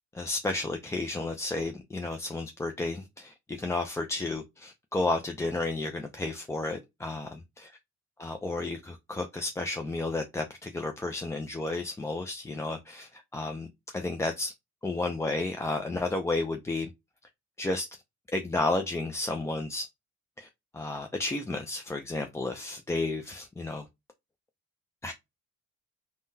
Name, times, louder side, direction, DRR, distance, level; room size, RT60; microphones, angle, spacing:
voice 1, 0.1-7.4 8.2-14.5 14.8-16.9 17.6-17.9 18.3-19.9 20.4-23.8 25.0-25.1, left 2 dB, 10° left, 0.3 m, -32 dB
3.6 x 2.2 x 2.6 m
cardioid pair, 90°, 30 cm